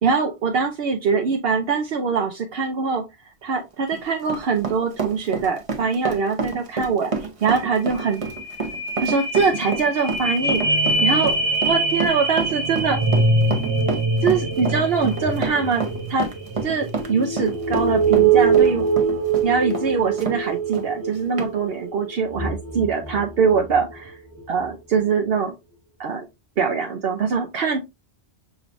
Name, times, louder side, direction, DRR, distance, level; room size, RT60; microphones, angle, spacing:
voice 1, 0.0-3.0 3.4-7.1 7.4-8.2 9.0-10.6 11.0-11.4 11.6-13.0 14.2-15.8 16.1-16.3 16.6-18.9 19.4-24.2 24.5-25.5 26.0-26.3 26.6-27.9, right 5 dB, 65° right, 3 dB, 0.9 m, -23 dB
Run, 3.7-20.4 20.7-20.9 21.4-21.5, right 4 dB, 35° right, 0.8 m, -29 dB
sound 1, 8.0-23.9 24.4-24.5, right 4 dB, 85° right, 1.6 m, -23 dB
6.2 x 3.2 x 2.5 m, 0.23 s
omnidirectional pair, 1.1 m